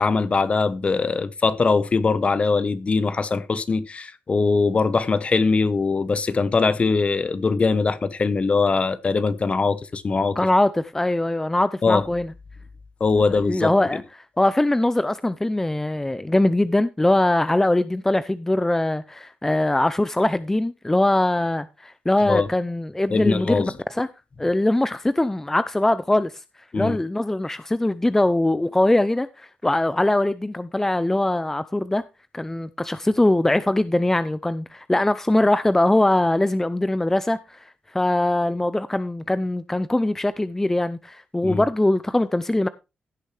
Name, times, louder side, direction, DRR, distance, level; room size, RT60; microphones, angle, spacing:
voice 1, 0.0-10.4 11.8-12.0 13.0-13.7 22.2-22.5 23.1-23.7 26.7-27.0 41.4-41.6, left 4 dB, 40° left, 1.0 m, -21 dB
voice 2, 10.4-12.3 13.3-23.6 23.9-24.1 24.4-26.4 26.7-32.0 32.3-42.7, left 1 dB, 10° left, 0.5 m, -22 dB
16.0 x 6.6 x 3.2 m
cardioid pair, 90°, 3 cm